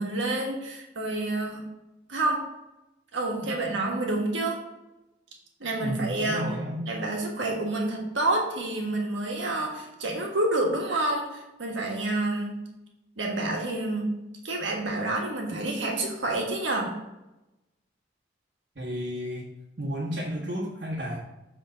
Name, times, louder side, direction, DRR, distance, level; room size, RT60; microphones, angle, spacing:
voice 1, 0.0-1.6 2.1-2.5 3.1-4.6 5.6-6.4 6.9-12.6 13.2-14.2 14.4-16.9, right 2 dB, 80° right, -1 dB, 1.5 m, -28 dB
voice 2, 5.8-6.9 18.7-19.5 19.8-21.2, equal, 65° right, -5 dB, 1.5 m, -32 dB
7.9 x 3.7 x 5.1 m, 0.96 s
head